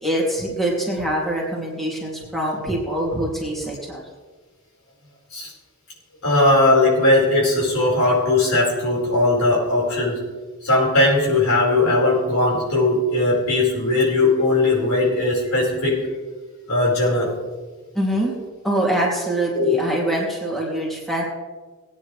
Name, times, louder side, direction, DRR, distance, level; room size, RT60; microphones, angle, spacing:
voice 1, 0.0-4.0 17.9-18.3 18.6-21.2, right 1 dB, ahead, -4 dB, 2.7 m, -24 dB
voice 2, 6.2-10.2 10.6-16.0 16.7-17.3 19.5-19.8, left 2 dB, 80° left, -4 dB, 4.7 m, -18 dB
19.0 x 9.6 x 3.3 m, 1.3 s
head